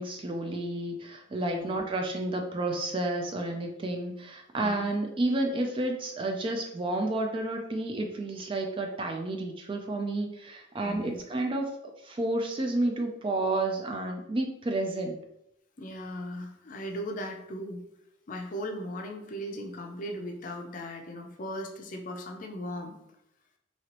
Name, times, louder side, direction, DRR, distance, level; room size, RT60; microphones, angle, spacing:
voice 1, 0.0-15.2, right 2 dB, 25° right, 3 dB, 0.3 m, -31 dB
voice 2, 1.4-1.8 4.6-4.9 10.8-11.2 15.8-17.8 18.3-22.9, equal, 40° left, 2 dB, 0.5 m, -38 dB
3.0 x 2.9 x 2.9 m, 0.80 s
head